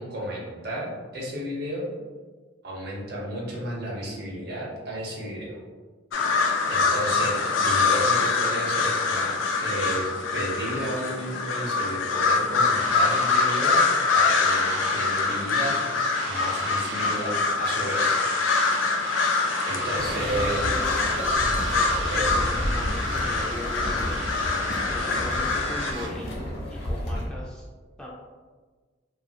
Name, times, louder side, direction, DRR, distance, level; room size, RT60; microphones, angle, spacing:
voice 1, 0.0-1.9 2.6-5.6 6.6-10.1 10.3-13.8 14.1-18.2 19.6-20.7 22.1-22.5, right 1 dB, 55° right, -3 dB, 0.7 m, -33 dB
sound 1, 6.1-25.9, left 4 dB, 85° left, 0.4 m, -25 dB
sound 2, 12.7-26.1, right 3 dB, 90° right, 0.5 m, -36 dB
voice 2, 19.8-21.1 21.7-27.6 28.0-28.1, left 1 dB, 5° left, -5 dB, 0.3 m, -39 dB
sound 3, 20.0-27.3, equal, 55° left, 0.7 m, -32 dB
2.7 x 2.4 x 2.7 m, 1.4 s
head